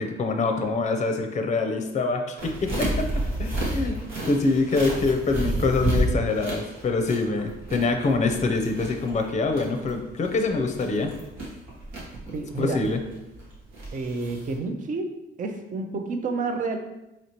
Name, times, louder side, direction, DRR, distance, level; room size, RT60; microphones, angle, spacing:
voice 1, 0.0-3.1 3.4-4.0 4.2-11.1 12.6-13.0, left 3 dB, 35° left, 5 dB, 0.5 m, -25 dB
sound 1, 2.4-14.6, right 1 dB, 90° right, 1.3 m, -31 dB
voice 2, 12.3-12.8 13.9-15.1 15.4-16.8, right 3 dB, 40° right, 4 dB, 0.5 m, -29 dB
4.3 x 2.9 x 2.9 m, 0.95 s
cardioid pair, 90°, 20 cm